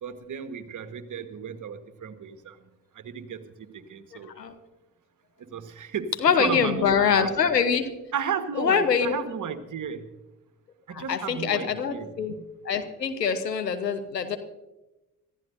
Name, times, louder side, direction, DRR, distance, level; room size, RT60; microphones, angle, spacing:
voice 1, 0.0-2.6 2.9-4.3 5.4-6.1 6.4-7.3 8.1-10.1 10.9-12.2, right 7 dB, 40° right, 10 dB, 1.5 m, -34 dB
voice 2, 6.2-7.8 8.5-9.2 10.9-12.4 12.6-14.4, left 6 dB, 85° left, 9 dB, 1.0 m, -24 dB
25.0 x 14.0 x 2.6 m, 1.0 s
figure-of-eight pair, 45°, 48 cm